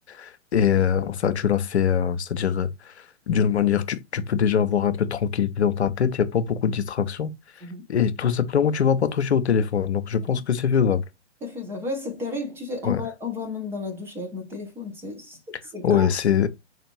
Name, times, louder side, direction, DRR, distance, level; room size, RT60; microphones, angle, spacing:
voice 1, 0.1-2.9 3.3-7.4 7.9-11.0 12.9-13.0 15.8-16.5, left 8 dB, 70° left, 0.6 m, -23 dB
voice 2, 11.4-16.1, left 3 dB, 5° right, 0.5 m, -33 dB
4.5 x 2.5 x 3.0 m
figure-of-eight pair, 115°, 34 cm